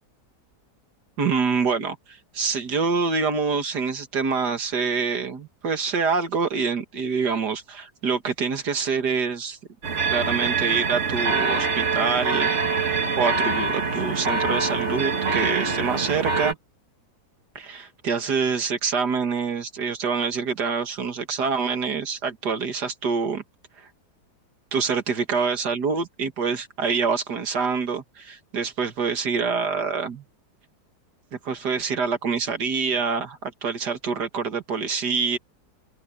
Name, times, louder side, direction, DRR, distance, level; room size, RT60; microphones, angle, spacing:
voice 1, 1.2-9.6 10.1-12.5 13.2-16.6 17.6-23.4 24.7-30.2 31.3-35.4, right 5 dB, 80° right, 2.4 m, -26 dB
sound 1, 9.8-16.5, right 4 dB, 45° right, 2.1 m, -24 dB
omnidirectional pair, 1.7 m